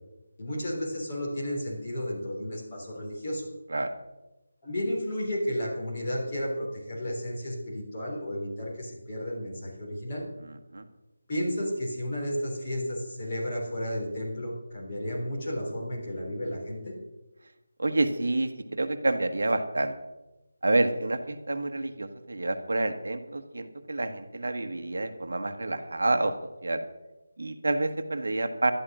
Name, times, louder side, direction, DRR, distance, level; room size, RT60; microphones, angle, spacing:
voice 1, 0.4-3.5 4.6-10.2 11.3-17.0, equal, 20° left, -5 dB, 3.5 m, -32 dB
voice 2, 17.8-19.9 20.6-26.3 26.6-26.8 27.4-28.7, right 2 dB, 60° right, 7 dB, 1.3 m, -28 dB
12.5 x 12.0 x 6.1 m, 1.0 s
figure-of-eight pair, 180°, 0 cm